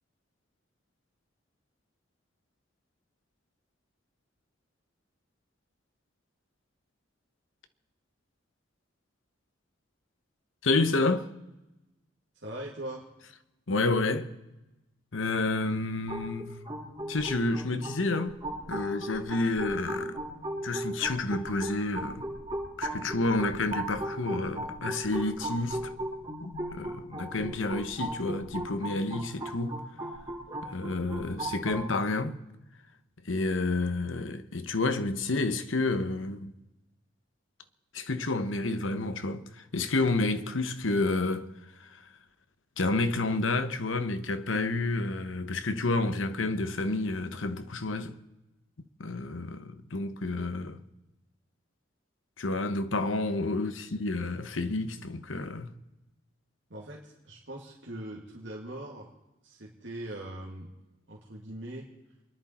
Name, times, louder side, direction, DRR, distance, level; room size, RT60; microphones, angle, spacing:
voice 1, 10.6-11.3 13.7-14.3 15.1-16.5 17.1-18.4 18.7-20.2 20.6-22.2 22.8-25.9 26.4-29.8 30.6-32.4 33.2-36.5 37.9-41.5 41.8-42.0 42.8-48.1 49.0-50.8 52.4-55.7, left 2 dB, 85° left, 1.1 m, -30 dB
voice 2, 12.4-13.1 53.5-53.6 56.7-59.1 59.4-60.7 61.1-61.9, right 1 dB, 65° right, 2.1 m, -41 dB
sound 1, 16.1-31.8, right 1 dB, 20° right, 7.4 m, -37 dB
28.5 x 11.0 x 4.4 m
head